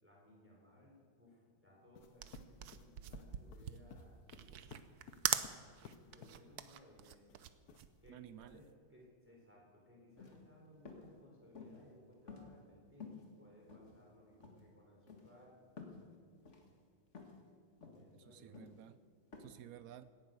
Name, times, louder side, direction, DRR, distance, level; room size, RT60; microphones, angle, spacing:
voice 1, 0.0-4.9 5.8-7.3 8.0-15.7 17.9-18.6, left 1 dB, 5° right, -3 dB, 4.1 m, -62 dB
sound 1, 1.9-6.4 7.3-8.1, left 7 dB, 60° left, 1.2 m, -56 dB
sound 2, 2.0-8.7, right 10 dB, 65° right, 1.1 m, -42 dB
voice 2, 8.1-8.6 18.1-19.0 19.4-20.1, right 12 dB, 85° right, 14 dB, 0.7 m, -54 dB
sound 3, 10.1-10.4 10.9-11.1 11.5-11.9 12.3-12.7 13.0-13.3 13.7-14.1 14.4-14.6 15.1-15.3 15.8-16.0 16.5-16.7 17.1-17.4 17.8-18.1 18.5-18.8 19.3-19.4, left 5 dB, 40° left, 2.0 m, -52 dB
17.5 x 10.0 x 6.7 m, 2.1 s
omnidirectional pair, 2.1 m